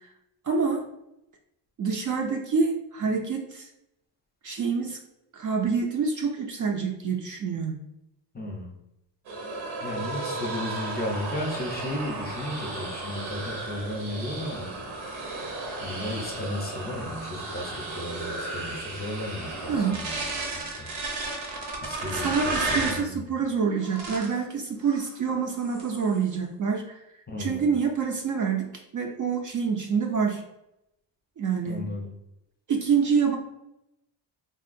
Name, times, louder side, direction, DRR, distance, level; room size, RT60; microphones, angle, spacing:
voice 1, 0.4-0.8 1.8-3.7 4.4-5.0 5.3-7.8 19.7-20.0 22.1-27.0 27.4-28.7 28.9-30.4 31.4-31.8 32.7-33.4, right 5 dB, 45° right, 2 dB, 0.4 m, -26 dB
voice 2, 8.3-8.7 9.8-15.2 15.8-20.2 20.5-20.9 21.2-23.1 27.3-27.7 31.6-32.1, left 1 dB, 20° left, 0 dB, 0.6 m, -35 dB
sound 1, 9.3-23.1 23.8-24.4 24.8-25.2 25.5-26.2, right 2 dB, 85° right, 0.9 m, -34 dB
3.6 x 2.3 x 2.6 m, 0.85 s
cardioid pair, 90°, 47 cm